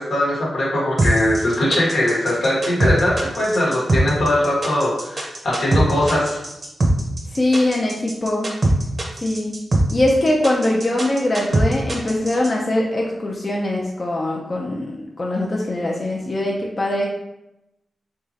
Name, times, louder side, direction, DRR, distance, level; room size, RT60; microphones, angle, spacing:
voice 1, 0.0-6.4, left 1 dB, 80° left, -5 dB, 1.2 m, -20 dB
sound 1, 1.0-12.5, right 2 dB, 45° right, 0.8 m, -21 dB
voice 2, 7.3-8.5 9.2-9.6 9.9-17.1, left 1 dB, 40° left, -2 dB, 0.5 m, -22 dB
3.5 x 2.9 x 2.7 m, 0.88 s
cardioid pair, 60°, 0 cm